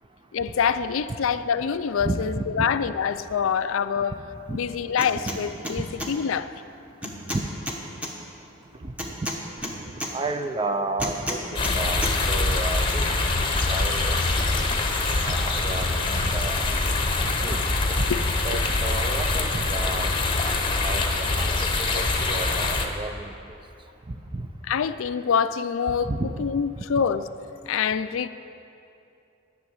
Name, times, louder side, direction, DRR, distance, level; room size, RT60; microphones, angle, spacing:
voice 1, 0.3-4.1 4.5-6.5 18.1-18.2 24.7-26.1 26.4-27.2 27.7-28.3, left 7 dB, 70° left, 12 dB, 0.4 m, -25 dB
voice 2, 2.0-2.7 4.5-4.6 7.3-7.4 8.8-8.9 10.1-11.4 11.7-14.8 15.2-16.7 17.4-17.6 18.0-18.1 18.4-20.1 20.8-23.3 24.1-24.5 26.0-26.3, right 2 dB, 25° right, 8 dB, 0.5 m, -32 dB
sound 1, 5.0-5.4 5.6-6.1 7.0-8.1 9.0-10.1 11.0-11.8 12.0-12.1, equal, 5° right, 1.0 m, -31 dB
sound 2, 11.6-22.9, left 3 dB, 25° left, 0.9 m, -24 dB
11.0 x 6.4 x 8.7 m, 2.7 s
head